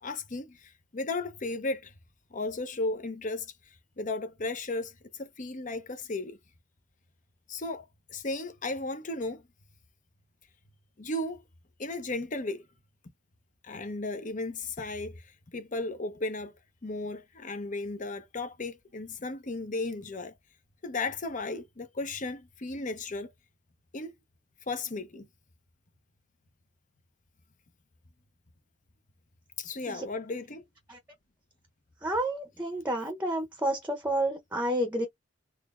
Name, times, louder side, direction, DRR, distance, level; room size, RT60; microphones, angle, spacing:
voice 1, 0.0-1.9 2.3-3.5 4.0-4.9 5.2-6.4 7.5-7.8 8.1-9.4 11.0-11.4 11.8-12.6 13.6-15.2 15.5-16.5 16.8-20.3 20.8-23.3 23.9-24.1 24.7-25.3 29.6-30.6, left 2 dB, 45° left, 0.8 m, -35 dB
voice 2, 32.0-35.1, right 1 dB, 10° right, 0.8 m, -30 dB
4.1 x 3.0 x 2.4 m
head